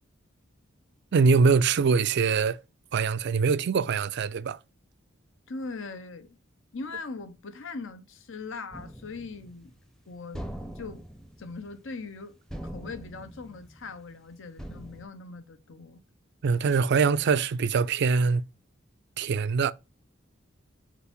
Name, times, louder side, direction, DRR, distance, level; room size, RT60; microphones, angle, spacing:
voice 1, 1.1-2.6 2.9-4.6 16.4-18.4 19.2-19.7, right 5 dB, 60° right, 0.4 m, -23 dB
voice 2, 5.5-6.4 6.7-9.7 10.1-10.4 10.8-11.0 11.4-12.3 12.6-16.0, left 4 dB, 70° left, 0.9 m, -40 dB
sound 1, 8.7-9.9 10.3-12.2 12.5-14.2 14.6-15.0, equal, 5° left, 0.7 m, -42 dB
4.8 x 4.5 x 5.2 m
head